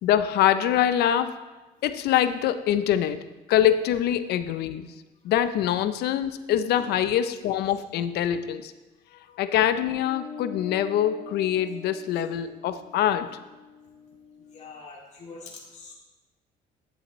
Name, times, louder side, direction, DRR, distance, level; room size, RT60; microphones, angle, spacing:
voice 1, 0.0-1.4 1.8-4.9 5.2-8.7 9.4-13.3, left 10 dB, 75° left, 11 dB, 0.6 m, -24 dB
sound 1, 9.9-14.7, left 5 dB, 25° right, 3.2 m, -44 dB
voice 2, 14.4-15.9, left 4 dB, 45° left, -3 dB, 2.5 m, -44 dB
10.5 x 7.8 x 3.1 m, 1.1 s
cardioid pair, 110°, 17 cm